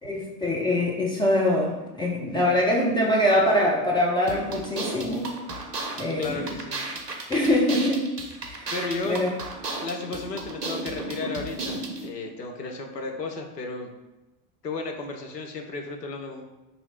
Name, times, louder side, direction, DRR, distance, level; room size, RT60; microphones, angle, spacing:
voice 1, 0.0-5.3 5.9-6.6 7.3-8.0 8.4-8.7 9.1-9.3, left 1 dB, 10° left, -3 dB, 0.4 m, -23 dB
sound 1, 4.3-12.1, right 2 dB, 90° right, 0.6 m, -34 dB
voice 2, 6.2-6.8 8.7-9.3 9.8-13.9 14.6-16.4, left 3 dB, 85° left, 2 dB, 0.6 m, -34 dB
2.8 x 2.7 x 4.3 m, 1.1 s
figure-of-eight pair, 70°, 47 cm